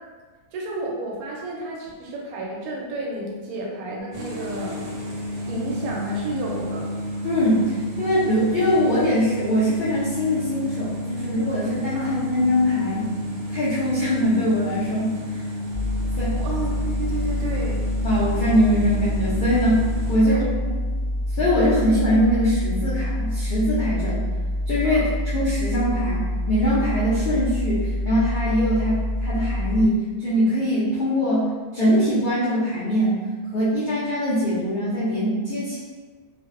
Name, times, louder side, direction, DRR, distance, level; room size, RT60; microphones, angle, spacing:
voice 1, 0.5-4.8 5.5-6.9 11.9-12.1 16.4-17.9 20.2-20.4 24.8-25.0, right 1 dB, 85° right, -2 dB, 1.1 m, -31 dB
sound 1, 4.1-20.2, equal, 65° right, 0.8 m, -31 dB
voice 2, 7.2-13.1 13.5-15.4 16.2-16.4 18.0-20.4 20.7-20.8 21.3-24.2 24.7-25.1 25.3-33.2 33.5-35.8, equal, 75° left, -10 dB, 0.4 m, -22 dB
sound 2, 15.7-29.9, left 1 dB, 50° right, 0.4 m, -26 dB
2.5 x 2.1 x 2.4 m, 1.4 s
omnidirectional pair, 1.5 m